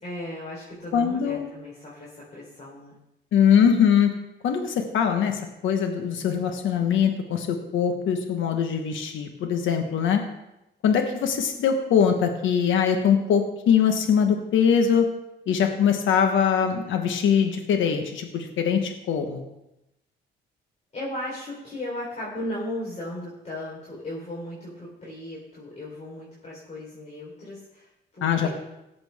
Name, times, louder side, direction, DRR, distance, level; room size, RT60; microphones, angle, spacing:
voice 1, 0.0-2.9 20.9-28.5, left 1 dB, 35° left, -5 dB, 3.9 m, -36 dB
voice 2, 0.9-1.5 3.3-4.1 4.4-10.2 10.8-15.1 15.5-19.4 28.2-28.5, left 7 dB, 75° left, 5 dB, 1.3 m, -22 dB
17.5 x 7.8 x 3.6 m, 0.90 s
cardioid pair, 90°, 20 cm